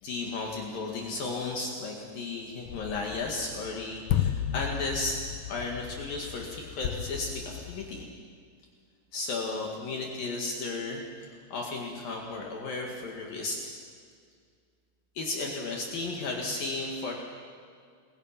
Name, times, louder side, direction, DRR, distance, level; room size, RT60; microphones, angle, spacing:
voice 1, 0.0-5.2 5.5-8.1 9.1-13.6 15.1-17.1, left 3 dB, 60° left, 0 dB, 3.4 m, -34 dB
sound 1, 2.7-8.0, left 10 dB, 85° left, 1.9 m, -34 dB
28.0 x 21.5 x 5.9 m, 2.1 s
omnidirectional pair, 4.9 m